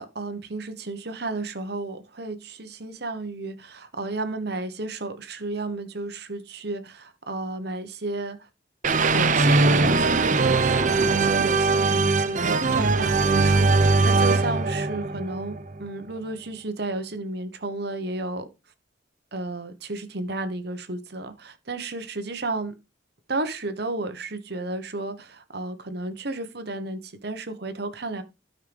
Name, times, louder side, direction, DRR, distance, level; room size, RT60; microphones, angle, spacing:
voice 1, 0.0-8.5 8.9-18.5 19.3-22.7 23.3-28.2, right 2 dB, 60° right, 1.2 m, -33 dB
sound 1, 8.8-15.8, right 3 dB, 40° right, 0.8 m, -21 dB
13.0 x 5.6 x 3.5 m
head